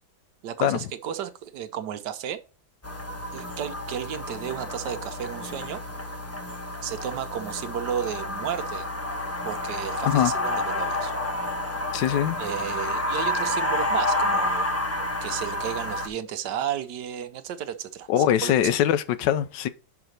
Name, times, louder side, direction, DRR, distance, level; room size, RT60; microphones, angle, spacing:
voice 1, 0.4-2.4 3.3-5.8 6.8-8.9 9.4-11.1 12.4-14.7 15.2-18.8, right 9 dB, 75° right, 1.4 m, -33 dB
sound 1, 2.8-16.1, left 1 dB, 20° left, 0.4 m, -29 dB
voice 2, 11.9-12.4 18.1-19.7, left 11 dB, 80° left, 1.3 m, -22 dB
5.8 x 4.9 x 6.5 m
omnidirectional pair, 1.9 m